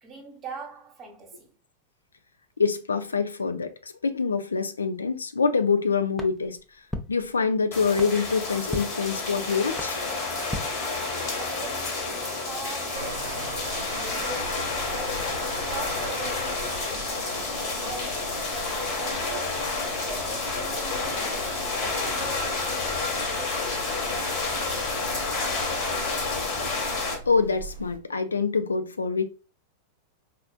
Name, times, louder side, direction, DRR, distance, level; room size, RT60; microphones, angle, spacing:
voice 1, 0.0-1.5 11.4-15.4 15.7-18.5 19.0-23.7, right 4 dB, 25° right, 1.1 m, -42 dB
voice 2, 2.6-6.6 7.1-10.0 27.3-29.2, left 5 dB, 75° left, 0.3 m, -25 dB
sound 1, 6.1-11.5, left 2 dB, 5° left, 0.5 m, -40 dB
sound 2, 7.7-27.2, left 3 dB, 40° left, 1.2 m, -30 dB
sound 3, 12.9-28.0, right 3 dB, 60° right, 0.6 m, -42 dB
4.2 x 2.4 x 2.4 m
figure-of-eight pair, 90°, 0 cm